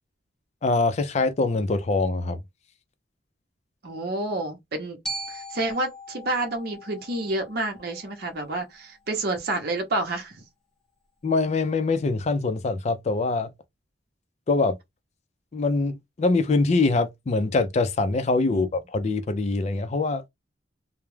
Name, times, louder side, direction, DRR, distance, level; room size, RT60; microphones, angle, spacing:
voice 1, 0.6-2.4 11.2-13.5 14.5-14.8 15.5-20.2, left 3 dB, 35° left, 0.4 m, -24 dB
voice 2, 3.8-5.0 5.3-10.4 18.5-18.7, right 2 dB, 55° right, 0.7 m, -29 dB
Glockenspiel, 5.0-9.2, right 1 dB, 5° left, 0.6 m, -40 dB
2.3 x 2.0 x 3.0 m
head